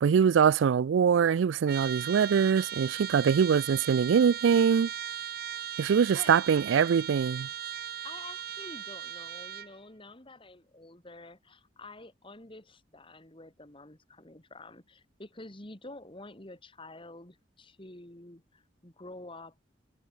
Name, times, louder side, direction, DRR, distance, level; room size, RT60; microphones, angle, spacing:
voice 1, 0.0-4.9 5.8-7.5, right 7 dB, 80° right, 0.3 m, -23 dB
Trumpet, 1.7-9.7, right 10 dB, 55° right, 1.4 m, -38 dB
voice 2, 8.0-19.5, left 2 dB, 30° left, 2.6 m, -48 dB
head